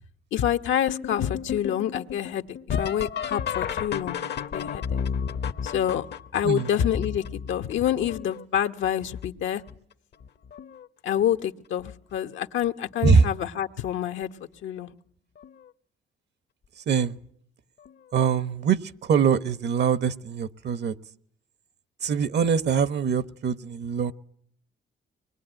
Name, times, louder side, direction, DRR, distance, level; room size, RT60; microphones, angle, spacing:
voice 1, 0.3-4.2 4.5-4.8 5.6-6.0 6.3-9.6 11.0-14.3 14.6-14.9, left 10 dB, 75° left, 7 dB, 1.2 m, -27 dB
sound 1, 0.9-8.6 9.2-9.8 10.2-10.9 12.1-12.2 12.9-13.3 15.4-15.5 17.9-18.0, left 7 dB, 55° left, 1.0 m, -33 dB
voice 2, 16.9-17.2 18.1-20.9 22.0-24.1, right 6 dB, 60° right, 15 dB, 1.1 m, -23 dB
24.5 x 21.0 x 9.1 m, 0.67 s
cardioid pair, 90°, 20 cm